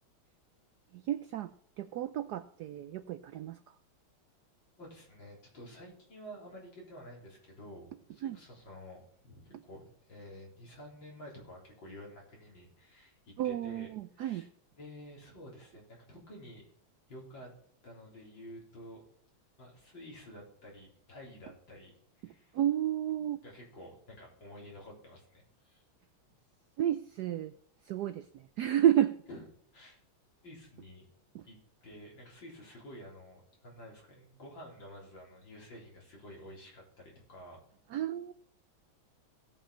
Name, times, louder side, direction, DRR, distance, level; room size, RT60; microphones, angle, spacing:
voice 1, 0.9-1.5 1.8-3.6 8.2-8.4 13.4-14.5 22.2-23.4 26.8-27.5 27.9-29.1 31.3-31.4 37.9-38.3, right 11 dB, 75° right, 12 dB, 0.9 m, -31 dB
voice 2, 4.8-13.9 14.1-14.5 14.8-16.6 17.1-17.5 17.8-19.0 19.6-22.6 23.4-25.8 26.3-26.4 29.3-29.5 29.7-30.0 30.4-31.1 31.4-37.6, equal, 65° left, -2 dB, 4.5 m, -50 dB
17.0 x 5.8 x 4.2 m, 0.64 s
omnidirectional pair, 2.3 m